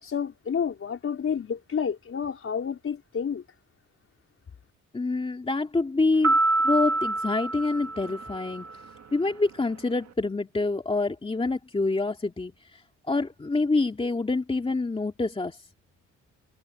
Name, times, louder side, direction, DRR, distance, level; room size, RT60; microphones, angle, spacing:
voice 1, 0.0-3.4, left 7 dB, 45° left, 4.7 m, -30 dB
voice 2, 4.9-6.4 6.6-8.7 9.1-12.8 13.1-15.6, left 3 dB, 20° left, 2.5 m, -26 dB
sound 1, 6.2-8.8, right 2 dB, 60° right, 2.9 m, -26 dB
cardioid pair, 90°, 30 cm